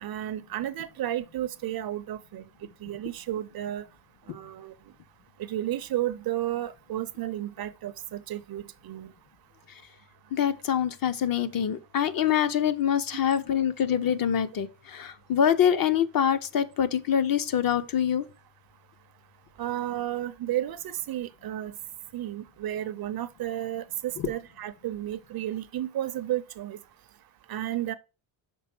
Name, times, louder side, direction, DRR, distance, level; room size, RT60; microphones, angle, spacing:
voice 1, 0.0-2.4 2.8-3.8 4.3-4.7 5.5-9.1 19.6-21.7 22.1-26.8 27.5-27.9, right 13 dB, 50° right, 0.5 m, -32 dB
voice 2, 10.3-18.2 24.2-24.3, left 9 dB, 45° left, 0.6 m, -25 dB
6.1 x 3.7 x 5.8 m
cardioid pair, 170°, 48 cm